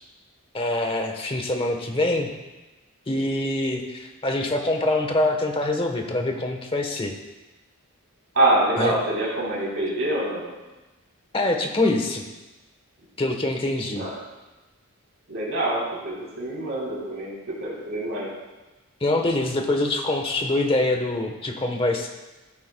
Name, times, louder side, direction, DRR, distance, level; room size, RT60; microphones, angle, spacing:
voice 1, 0.5-2.3 3.1-7.1 8.8-8.9 11.3-12.2 13.2-14.1 19.0-22.1, left 2 dB, 25° left, 3 dB, 1.1 m, -24 dB
voice 2, 8.4-10.5 13.9-14.1 15.3-17.3 17.6-18.3, right 1 dB, 65° right, -6 dB, 3.8 m, -25 dB
16.0 x 9.3 x 2.3 m, 1.1 s
head